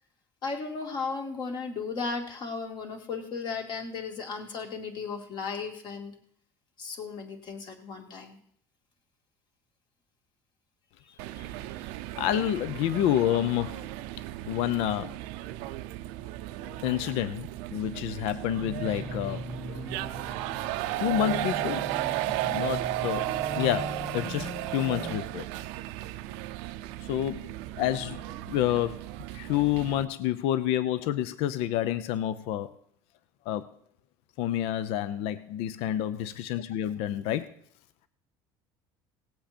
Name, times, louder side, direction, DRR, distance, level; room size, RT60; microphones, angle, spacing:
voice 1, 0.4-6.1 6.8-8.4 11.0-11.9, left 4 dB, 45° left, 3 dB, 2.4 m, -36 dB
sound 1, 11.2-30.0, right 16 dB, 80° right, 0.5 m, -35 dB
voice 2, 12.2-13.9 14.5-15.1 16.6-19.4 19.7-20.2 21.0-21.9 22.4-25.5 27.1-29.0 29.3-32.7 33.5-33.7 34.4-37.5, left 12 dB, 75° left, 14 dB, 0.6 m, -29 dB
sound 2, 18.6-25.2, left 1 dB, 5° left, 1.1 m, -40 dB
18.0 x 7.8 x 4.4 m, 0.66 s
supercardioid pair, 115°, 10 cm